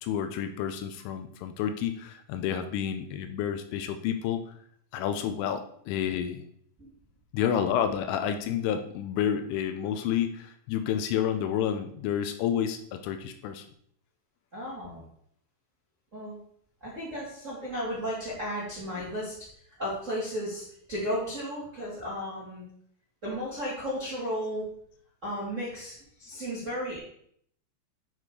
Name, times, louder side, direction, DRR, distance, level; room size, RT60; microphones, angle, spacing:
voice 1, 0.0-4.5 4.9-6.4 7.3-13.7, left 9 dB, 85° left, 8 dB, 3.1 m, -30 dB
voice 2, 14.5-15.0 16.1-16.3 16.8-19.3 19.8-22.6 23.2-24.7 25.2-27.0, equal, 70° right, -7 dB, 0.7 m, -34 dB
8.8 x 4.2 x 4.6 m, 0.65 s
omnidirectional pair, 5.7 m